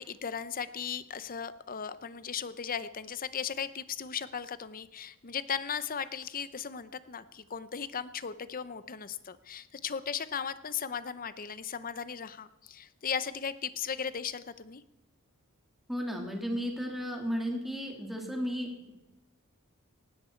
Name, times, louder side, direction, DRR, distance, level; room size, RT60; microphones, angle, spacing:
voice 1, 0.0-14.8, left 7 dB, 40° left, 14 dB, 0.7 m, -37 dB
voice 2, 15.9-18.9, equal, ahead, 1 dB, 2.6 m, -34 dB
19.0 x 16.0 x 4.5 m, 0.94 s
head